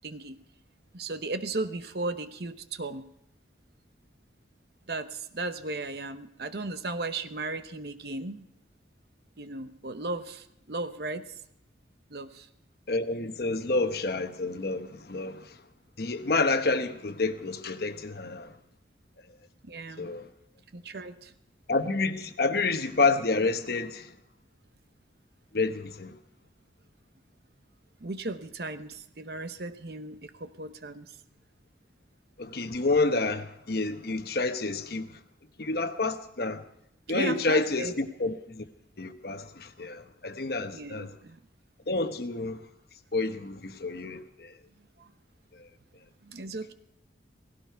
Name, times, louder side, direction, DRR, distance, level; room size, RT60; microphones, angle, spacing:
voice 1, 0.0-0.4 0.9-3.1 4.9-8.4 9.4-11.3 12.1-12.5 19.6-20.1 20.7-21.3 28.0-31.2 37.1-37.9 40.7-41.4 45.0-45.1 46.2-46.7, right 2 dB, 60° right, 0.9 m, -36 dB
voice 2, 12.9-15.5 16.0-18.5 20.0-20.3 21.7-24.1 25.5-26.1 32.4-35.1 35.6-36.6 37.1-38.6 39.0-41.1 41.9-42.6 43.1-44.5 45.6-45.7, left 3 dB, 55° left, 1.0 m, -29 dB
17.0 x 16.5 x 4.6 m
head